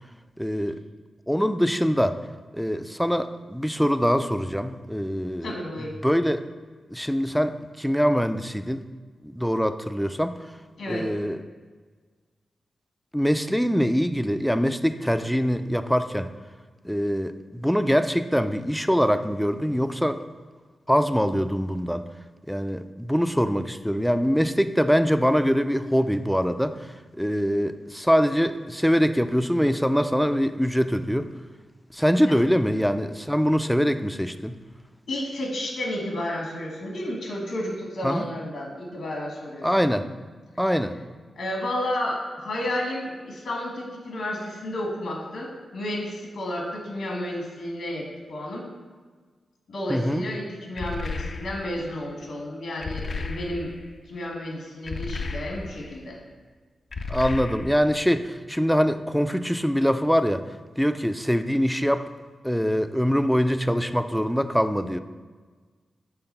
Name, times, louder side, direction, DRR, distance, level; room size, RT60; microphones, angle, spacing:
voice 1, 0.4-0.8 1.3-2.2 2.5-5.5 6.0-6.4 6.9-8.8 9.2-10.4 10.9-11.4 13.1-16.3 16.8-20.2 20.9-22.1 22.5-26.9 27.1-31.3 31.9-34.6 38.0-38.3 39.6-40.1 40.6-41.0 49.9-50.2 57.1-60.4 60.8-62.0 62.4-65.0, equal, ahead, 10 dB, 0.4 m, -23 dB
voice 2, 5.4-5.9 10.8-11.1 32.2-32.3 35.1-39.7 41.3-48.6 49.7-53.7 54.1-56.2, left 1 dB, 80° left, 0 dB, 1.5 m, -31 dB
sound 1, 50.8-51.8 52.8-53.9 54.9-55.9 56.9-58.0, left 3 dB, 60° left, 0.5 m, -33 dB
5.8 x 3.9 x 5.4 m, 1.4 s
cardioid pair, 50°, 0 cm